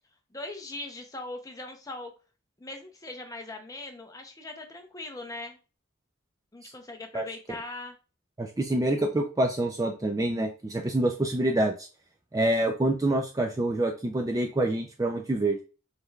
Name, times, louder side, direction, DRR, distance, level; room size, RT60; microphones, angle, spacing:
voice 1, 0.3-2.1 2.6-5.6 6.5-8.0, left 2 dB, 15° left, 4 dB, 0.7 m, -40 dB
voice 2, 8.4-11.9 12.3-15.6, right 1 dB, 15° right, 3 dB, 0.3 m, -26 dB
5.1 x 3.3 x 2.3 m, 0.33 s
head